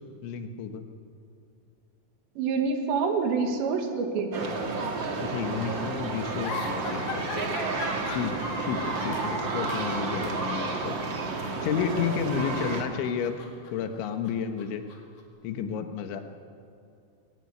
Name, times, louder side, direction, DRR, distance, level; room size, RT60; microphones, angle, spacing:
voice 1, 0.2-0.8 5.2-7.2 8.2-11.0 11.6-13.4 13.7-14.8 15.4-16.2, left 7 dB, 90° left, 7 dB, 3.7 m, -31 dB
voice 2, 2.4-4.5 10.5-10.6, right 5 dB, 75° right, 5 dB, 4.0 m, -27 dB
sound 1, 4.3-12.8, right 3 dB, 50° right, 1.4 m, -31 dB
sound 2, 6.4-9.4 9.7-9.9 10.2-10.4 11.3-12.5 12.8-15.2, left 4 dB, 50° left, 3.6 m, -40 dB
21.5 x 16.5 x 9.7 m, 2.5 s
omnidirectional pair, 5.2 m